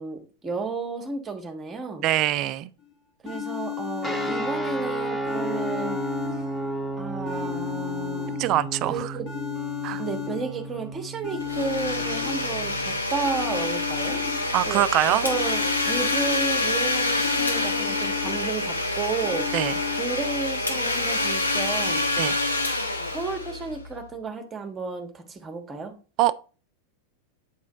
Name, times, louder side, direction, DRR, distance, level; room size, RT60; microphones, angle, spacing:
voice 1, 0.0-2.1 3.2-6.0 7.0-8.3 8.9-9.3 10.0-14.2 14.7-19.5 20.0-22.1 23.1-25.9, right 4 dB, 20° right, 1.1 m, -32 dB
voice 2, 2.0-2.7 8.4-9.1 9.8-10.0 14.5-15.2 19.5-19.7 22.2-22.3 26.2-26.4, right 14 dB, 40° right, 0.3 m, -23 dB
sound 1, 2.8-2.9 3.3-4.8 5.3-6.8 7.3-8.8 9.3-10.8 11.2-12.8 13.2-14.8 15.2-16.8 17.2-18.8 19.2-20.0, left 11 dB, 40° left, 1.2 m, -34 dB
sound 2, 4.0-13.0, right 1 dB, 5° left, 1.2 m, -33 dB
Domestic sounds home sounds, 11.4-24.0, left 2 dB, 80° left, 0.9 m, -27 dB
8.9 x 3.1 x 3.7 m
figure-of-eight pair, 90°, 0 cm